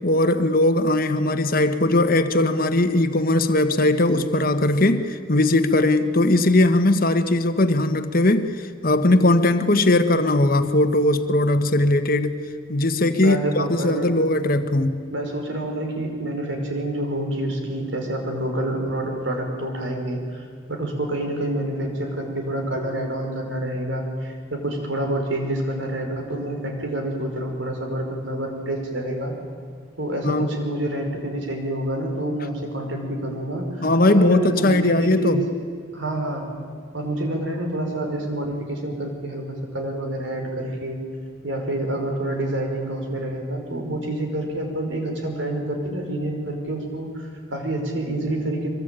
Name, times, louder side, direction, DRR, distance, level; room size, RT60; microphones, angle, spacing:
voice 1, 0.0-8.5 8.8-12.4 12.7-15.0 30.2-30.5 33.8-35.4, left 2 dB, 45° left, 9 dB, 1.5 m, -19 dB
voice 2, 13.1-14.2 15.1-29.3 30.0-35.4 35.9-36.5 36.9-41.0 41.4-48.7, right 1 dB, 65° right, 3 dB, 5.5 m, -27 dB
24.5 x 23.0 x 9.2 m, 2.3 s
head